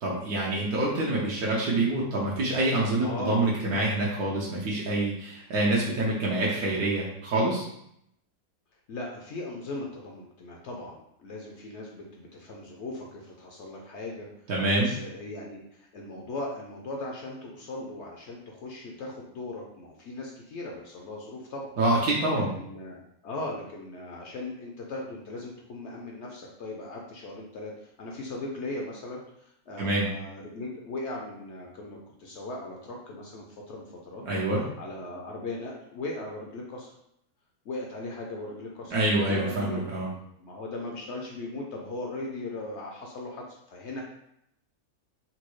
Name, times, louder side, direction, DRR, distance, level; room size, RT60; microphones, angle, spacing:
voice 1, 0.0-7.7 14.5-14.9 21.8-22.5 29.8-30.1 34.3-34.6 38.9-40.1, right 2 dB, 80° right, -5 dB, 1.3 m, -26 dB
voice 2, 3.0-3.4 8.9-14.3 14.7-21.7 22.3-34.2 34.8-36.9 37.6-39.9 40.4-44.0, left 2 dB, 65° left, -1 dB, 0.7 m, -38 dB
4.1 x 2.2 x 3.0 m, 0.75 s
omnidirectional pair, 1.6 m